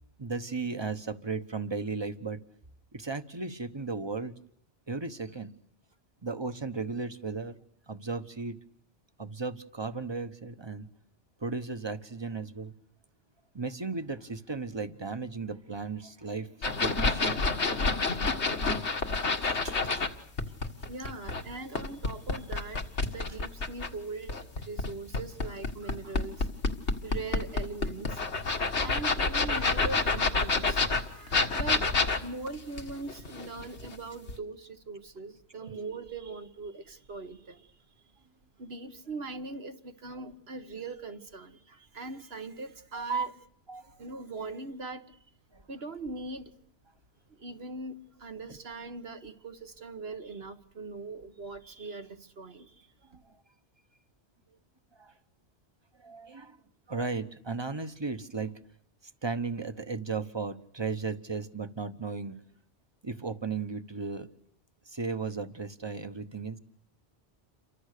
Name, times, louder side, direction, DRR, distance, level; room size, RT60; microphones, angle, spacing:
voice 1, 0.2-2.4 2.9-4.3 4.9-5.5 6.2-7.6 7.9-8.6 9.2-10.9 11.4-12.7 13.5-17.4 19.4-20.1 42.9-43.3 43.7-43.9 45.5-45.6 48.5-48.6 53.1-53.2 55.0-55.1 56.0-56.6 56.9-58.5 59.2-62.4 63.0-64.3 64.9-66.6, right 4 dB, 25° right, 1.1 m, -35 dB
sound 1, 16.6-20.1 20.4-23.9 24.3-34.0 34.3-34.4, left 3 dB, 80° left, 2.0 m, -28 dB
voice 2, 20.9-26.5 27.0-28.2 28.8-37.7 38.6-43.3 44.0-45.2 45.7-46.5 47.3-52.9, right 3 dB, 65° right, 1.6 m, -41 dB
29.0 x 24.5 x 6.7 m
omnidirectional pair, 1.1 m